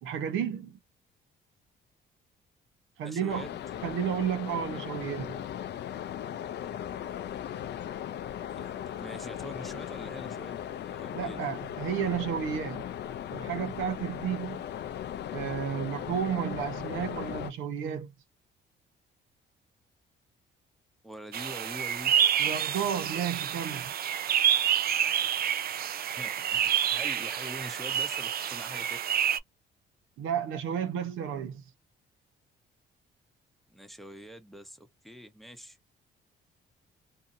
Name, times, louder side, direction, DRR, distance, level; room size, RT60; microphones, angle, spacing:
voice 1, 0.0-0.8 3.0-3.5 3.8-5.4 11.1-12.9 13.3-14.6 15.3-18.1 22.4-23.9 30.2-31.6, right 8 dB, 85° right, 0.7 m, -32 dB
voice 2, 3.0-3.5 8.5-11.4 21.0-22.2 26.0-29.0 33.7-35.8, equal, ahead, 0.8 m, -45 dB
sound 1, 3.3-17.5, left 10 dB, 60° left, 0.4 m, -38 dB
sound 2, 21.3-29.4, right 9 dB, 50° right, 0.4 m, -28 dB
2.7 x 2.6 x 2.5 m
cardioid pair, 90°, 20 cm